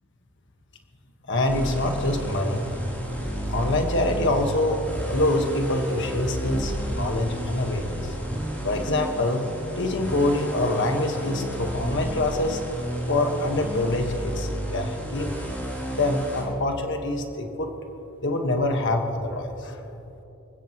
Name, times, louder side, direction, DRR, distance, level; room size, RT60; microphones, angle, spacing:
voice 1, 1.3-2.6 3.5-4.8 5.1-8.2 8.6-9.4 9.8-12.6 13.1-15.4 15.9-17.7 18.2-19.8, left 2 dB, 55° left, 3 dB, 1.5 m, -25 dB
sound 1, 1.5-16.4, equal, 10° left, 3.3 m, -32 dB
25.5 x 15.5 x 3.1 m, 3.0 s
head